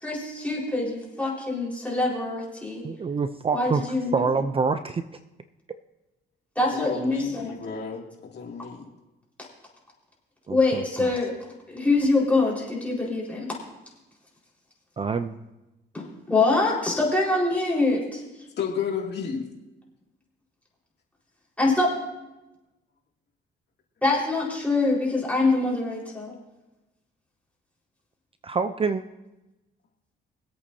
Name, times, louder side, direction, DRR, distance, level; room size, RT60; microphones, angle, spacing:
voice 1, 0.0-2.8 3.5-4.2 6.5-7.5 10.5-11.3 11.7-13.5 15.9-18.2 21.6-21.9 24.0-26.3, left 2 dB, 5° left, -4 dB, 4.6 m, -24 dB
voice 2, 2.8-3.8 4.1-5.0 10.5-11.1 15.0-15.4 28.4-29.0, right 5 dB, 30° right, 10 dB, 0.5 m, -26 dB
voice 3, 6.7-8.9 18.6-19.5, left 6 dB, 60° left, -1 dB, 2.6 m, -31 dB
24.5 x 8.4 x 2.8 m, 1.0 s
cardioid pair, 90°, 20 cm